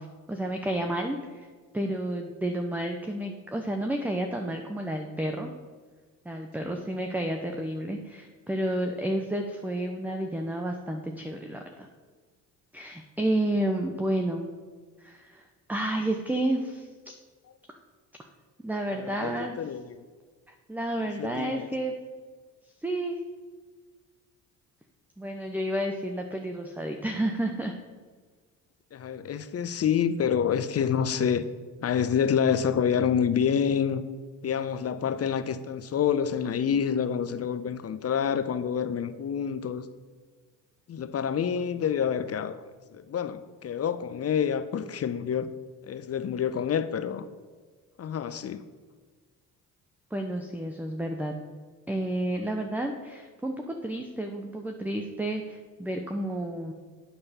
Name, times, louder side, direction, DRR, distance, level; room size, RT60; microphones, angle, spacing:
voice 1, 0.0-1.5 1.7-5.5 6.2-11.9 12.7-14.5 15.0-16.9 18.6-19.7 20.5-21.9 22.8-23.2 25.2-27.8 50.1-51.3 51.9-56.7, right 1 dB, 5° right, 3 dB, 0.8 m, -31 dB
voice 2, 18.9-20.0 21.2-21.7 28.9-31.5 31.8-34.0 34.4-39.8 40.9-42.6 42.9-45.5 45.9-47.3 48.0-48.6, left 7 dB, 35° left, 13 dB, 0.6 m, -27 dB
8.6 x 6.7 x 4.3 m, 1.5 s
hypercardioid pair, 55°, 43 cm